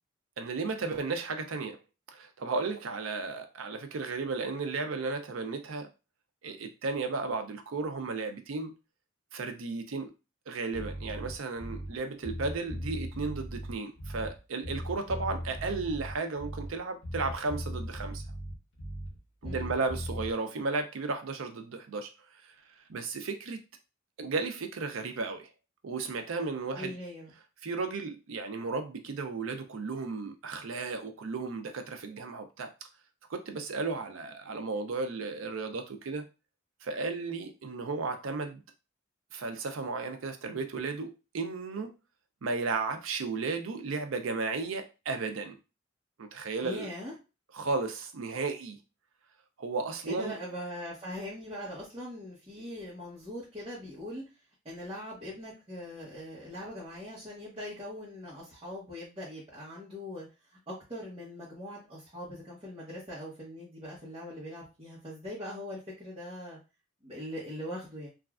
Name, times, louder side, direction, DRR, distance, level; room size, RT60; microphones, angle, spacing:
voice 1, 0.4-1.8 2.1-5.9 6.4-8.7 9.3-10.1 10.5-18.2 19.4-22.1 22.9-23.6 24.2-25.5 25.8-27.0 27.6-32.7 33.3-36.2 36.8-38.6 39.3-41.9 42.4-45.5 46.2-46.9 47.5-48.8 49.6-50.3, right 4 dB, 90° right, 7 dB, 0.5 m, -34 dB
Bass guitar, 10.7-12.0 12.2-14.4 14.6-16.8 17.0-19.2 19.4-20.3, equal, 70° left, 1.3 m, -38 dB
voice 2, 26.7-27.3 46.6-47.1 50.0-54.2 54.6-60.3 60.7-66.6 67.0-68.1, left 1 dB, 25° right, -10 dB, 0.9 m, -41 dB
3.1 x 2.4 x 2.4 m, 0.29 s
head